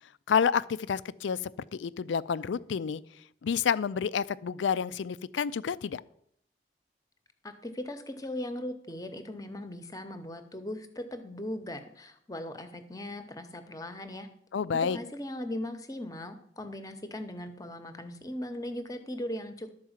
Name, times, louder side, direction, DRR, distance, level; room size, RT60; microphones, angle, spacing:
voice 1, 0.3-1.4 1.7-3.0 3.4-6.0 14.5-15.0, left 7 dB, 85° left, 18 dB, 0.4 m, -29 dB
voice 2, 7.4-14.3 14.7-19.7, left 1 dB, 20° left, 9 dB, 0.8 m, -38 dB
12.0 x 4.7 x 7.3 m, 0.70 s
head